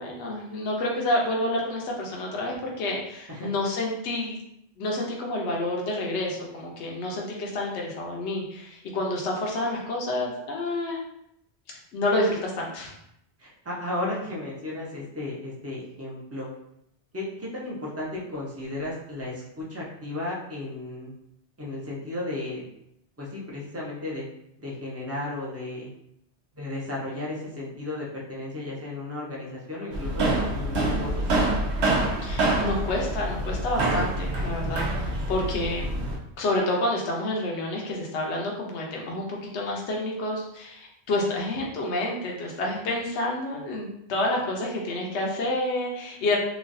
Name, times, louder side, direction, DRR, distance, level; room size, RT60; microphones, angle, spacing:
voice 1, 0.0-4.4 4.8-11.0 11.9-12.9 32.2-36.0 36.4-46.4, left 1 dB, 75° left, -1 dB, 1.0 m, -29 dB
voice 2, 13.4-16.5 17.1-21.1 21.6-22.6 23.2-24.2 24.6-25.9 26.6-31.5, left 2 dB, 15° right, -5 dB, 0.6 m, -34 dB
sound 1, 29.9-36.2, right 2 dB, 75° right, 0.9 m, -26 dB
3.1 x 2.3 x 2.6 m, 0.77 s
omnidirectional pair, 1.2 m